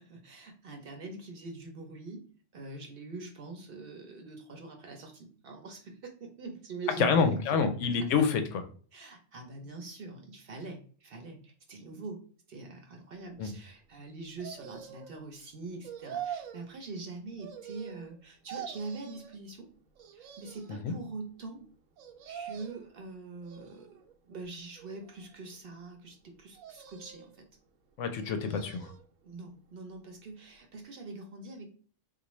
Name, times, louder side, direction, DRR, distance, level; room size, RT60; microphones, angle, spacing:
voice 1, 0.0-2.2 2.5-8.1 8.9-12.2 12.5-19.7 20.1-21.7 22.2-27.5 29.2-31.7, right 3 dB, 55° right, 3 dB, 0.7 m, -44 dB
voice 2, 7.0-8.4 13.4-13.5 20.8-20.9 28.0-28.9, left 5 dB, 75° left, 8 dB, 0.9 m, -27 dB
sound 1, 14.4-15.2 15.8-16.7 17.4-18.2 18.5-19.3 20.0-20.8 22.0-22.9 23.4-24.1 24.8-25.5 26.6-27.4 28.1-29.0 29.4-29.5, right 9 dB, 90° right, 1.0 m, -44 dB
3.8 x 2.5 x 3.0 m, 0.44 s
omnidirectional pair, 1.3 m